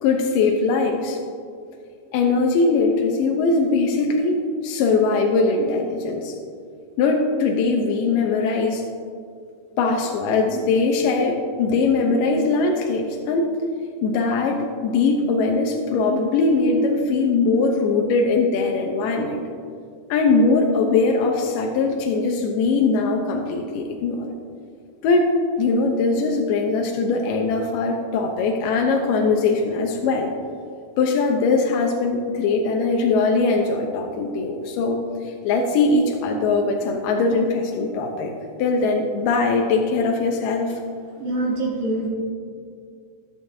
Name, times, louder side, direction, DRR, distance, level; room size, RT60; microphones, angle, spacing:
voice 1, 0.0-1.2 2.1-6.4 7.0-8.8 9.8-13.5 14.0-19.4 20.1-24.3 25.0-30.3 31.0-38.3 38.6-40.8, left 3 dB, 80° left, 1 dB, 2.4 m, -21 dB
voice 2, 41.2-42.1, right 2 dB, 80° right, -4 dB, 3.8 m, -24 dB
20.0 x 7.5 x 2.7 m, 2.3 s
omnidirectional pair, 4.0 m